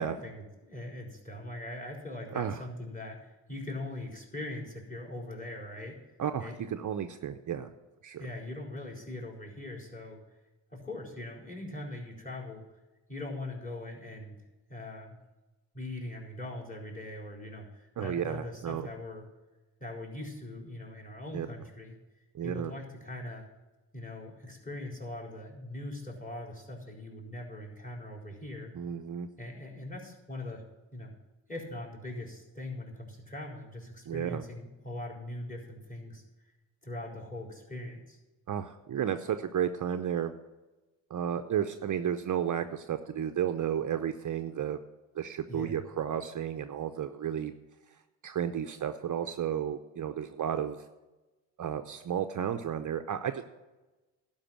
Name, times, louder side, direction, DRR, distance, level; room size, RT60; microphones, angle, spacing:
voice 1, 0.0-6.0 6.4-6.6 8.2-10.2 10.7-12.6 13.1-14.4 14.7-15.2 15.7-19.3 19.8-21.9 22.4-23.4 23.9-28.7 29.4-30.6 30.9-31.1 31.5-36.2 36.8-38.2 45.5-45.8, left 1 dB, 15° left, 0 dB, 4.3 m, -41 dB
voice 2, 6.2-7.7 8.0-8.3 18.0-18.9 21.3-21.5 22.3-22.7 28.7-29.3 34.1-34.4 38.5-40.3 41.1-44.8 45.2-47.5 48.2-50.8 51.6-53.4, right 9 dB, 45° right, 8 dB, 0.7 m, -32 dB
12.0 x 5.5 x 8.9 m, 1.1 s
supercardioid pair, 65°, 45 cm